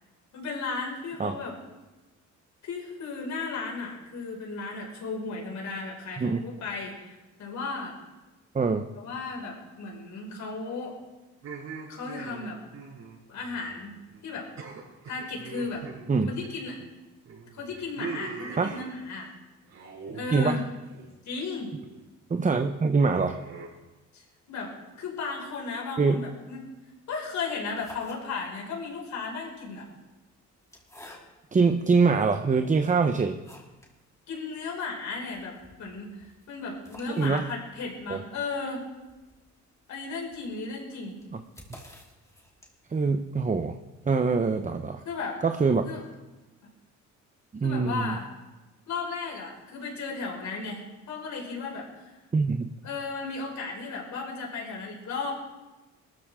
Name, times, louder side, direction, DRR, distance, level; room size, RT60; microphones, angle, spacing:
voice 1, 0.3-1.6 2.6-7.9 9.0-11.0 11.9-12.6 13.3-14.0 14.2-14.5 15.1-15.9 16.3-16.8 17.5-19.3 20.1-20.6 21.2-21.7 24.1-26.7 27.1-29.9 34.3-38.9 39.9-41.2 45.1-45.4 45.8-46.0 47.6-48.3 48.9-52.1 52.8-55.3, left 4 dB, 70° left, -1 dB, 5.7 m, -35 dB
sound 1, 11.4-13.9 14.1-14.3 14.6-16.9 17.3-19.3 19.7-20.3 20.6-21.1 21.6-22.0 23.0-23.7, right 5 dB, 65° right, 6.3 m, -42 dB
voice 2, 20.3-20.6 22.3-23.4 26.0-26.2 31.5-33.4 37.2-37.4 38.1-38.2 42.9-43.8 44.1-45.0 45.4-45.9 47.5-48.2 52.3-52.7, right 4 dB, 25° right, 7 dB, 0.9 m, -24 dB
sound 2, 27.6-28.7 29.6-31.6 32.3-32.4 32.8-34.0 34.3-34.4 34.7-34.8 35.1-43.0, left 1 dB, 10° left, 3.7 m, -53 dB
21.5 x 14.0 x 3.8 m, 1.1 s
cardioid pair, 90°, 30 cm